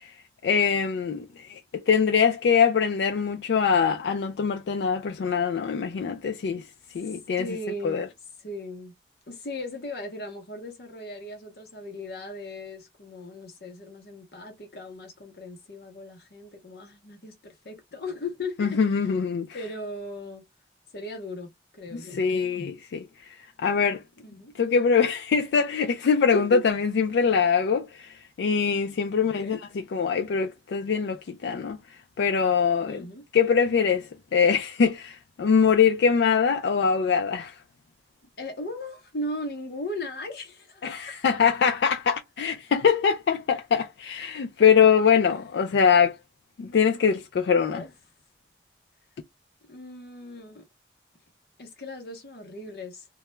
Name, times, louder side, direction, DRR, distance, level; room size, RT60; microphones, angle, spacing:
voice 1, 0.4-6.7 6.9-7.5 7.8-8.1 18.6-19.5 21.9-23.1 23.6-24.0 24.6-31.8 32.2-33.0 33.3-37.5 40.8-46.2 46.6-47.8, left 6 dB, 85° left, 0.3 m, -23 dB
voice 2, 7.4-8.0 8.4-8.9 9.3-18.8 19.5-20.5 20.9-22.2 24.2-24.5 26.3-26.6 29.2-29.6 32.9-33.2 38.4-40.9 47.7-47.9 49.7-50.6 51.6-53.1, left 2 dB, 65° left, 0.7 m, -37 dB
2.2 x 2.1 x 2.9 m
head